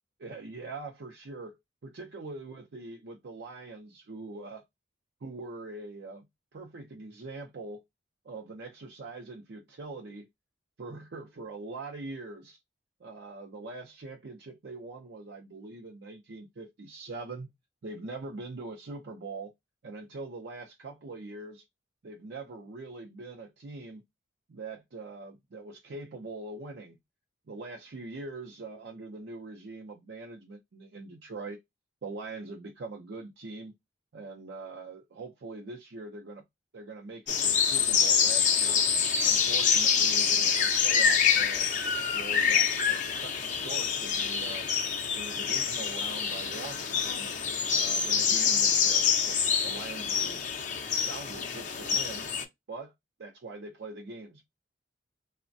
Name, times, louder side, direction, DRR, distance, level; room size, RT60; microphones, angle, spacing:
voice 1, 0.2-4.6 5.2-6.3 6.5-7.8 8.2-10.3 10.8-12.6 13.0-17.5 17.8-19.5 19.8-21.6 22.0-24.0 24.5-27.0 27.5-31.6 32.0-33.7 34.1-36.4 36.7-38.9 39.2-41.7 42.1-44.7 45.1-47.3 47.7-50.4 50.9-52.3 52.7-52.9 53.2-54.4, right 3 dB, 60° right, 0.5 m, -42 dB
sound 1, 37.3-52.4, left 6 dB, 40° left, 0.5 m, -26 dB
3.2 x 2.1 x 2.5 m
head